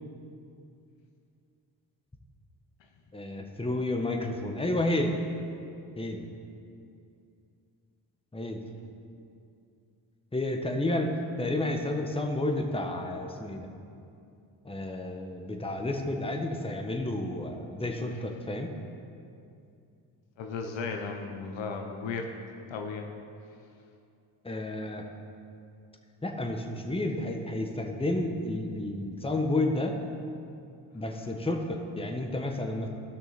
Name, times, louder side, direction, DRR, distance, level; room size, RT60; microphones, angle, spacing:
voice 1, 3.1-5.2 6.0-6.3 8.3-8.6 10.3-11.1 11.4-13.7 14.6-18.7 24.4-25.0 26.2-30.0 30.9-32.9, left 1 dB, 10° left, 3 dB, 1.3 m, -31 dB
voice 2, 20.4-22.3 22.7-23.1, left 4 dB, 65° left, 3 dB, 1.0 m, -35 dB
15.0 x 6.2 x 4.2 m, 2.5 s
hypercardioid pair, 45°, 49 cm